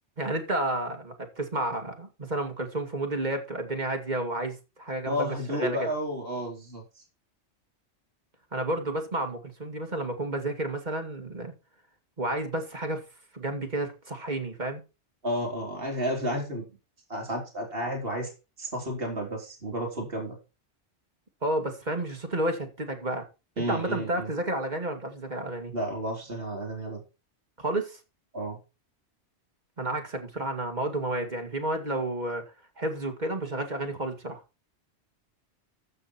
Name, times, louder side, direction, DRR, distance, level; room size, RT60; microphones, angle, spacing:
voice 1, 0.2-5.8 8.5-11.5 12.2-13.0 13.3-14.8 21.4-23.3 23.6-25.7 27.6-28.0 29.8-32.4 32.8-34.4, right 1 dB, 40° right, 2.3 m, -31 dB
voice 2, 5.1-6.8 15.2-16.7 17.1-18.3 18.6-20.4 23.6-24.3 25.7-27.0 28.3-28.6, equal, 60° right, 3.6 m, -31 dB
14.5 x 6.3 x 4.4 m
omnidirectional pair, 1.2 m